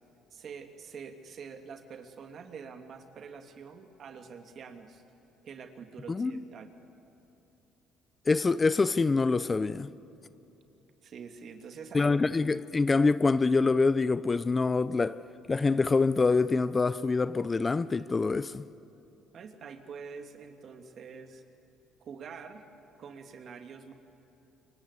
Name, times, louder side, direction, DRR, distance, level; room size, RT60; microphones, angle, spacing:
voice 1, 0.3-5.0 5.4-6.7 11.0-12.4 19.3-21.4 22.0-22.7 23.0-23.9, right 6 dB, 55° right, 2.6 m, -46 dB
voice 2, 8.3-9.9 11.9-15.2 15.5-18.6, left 4 dB, 25° left, 0.7 m, -25 dB
27.5 x 24.0 x 8.4 m
supercardioid pair, 80°, 0 cm